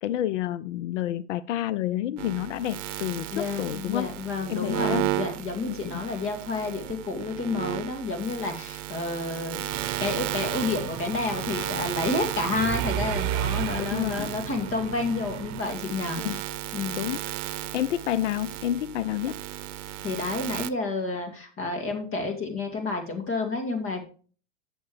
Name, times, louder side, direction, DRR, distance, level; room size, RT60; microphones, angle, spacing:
voice 1, 0.0-4.1 4.5-5.1 5.7-6.0 13.8-14.3 16.2-16.4 17.0-17.4 17.7-19.3, left 13 dB, 85° left, 16 dB, 0.5 m, -29 dB
sound 1, 2.2-20.7, right 15 dB, 90° right, 0.7 m, -34 dB
voice 2, 3.3-16.3 16.7-17.1 20.0-24.0, left 3 dB, 35° left, 4 dB, 2.3 m, -30 dB
Mechanisms, 9.7-15.6, right 11 dB, 45° right, 1.0 m, -33 dB
9.6 x 7.2 x 3.2 m, 0.38 s
hypercardioid pair, 110°, 36 cm